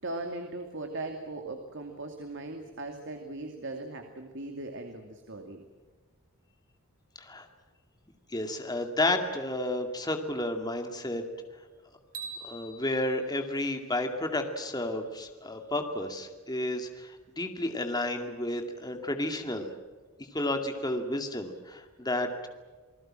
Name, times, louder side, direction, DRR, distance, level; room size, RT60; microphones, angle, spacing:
voice 1, 0.0-5.6, right 2 dB, 60° right, 4 dB, 2.4 m, -39 dB
voice 2, 8.3-11.2 12.4-19.7 20.3-22.5, left 1 dB, 20° left, 5 dB, 2.3 m, -31 dB
sound 1, 12.1-14.4, right 4 dB, 40° right, 4.0 m, -45 dB
29.0 x 20.0 x 7.6 m, 1.4 s
head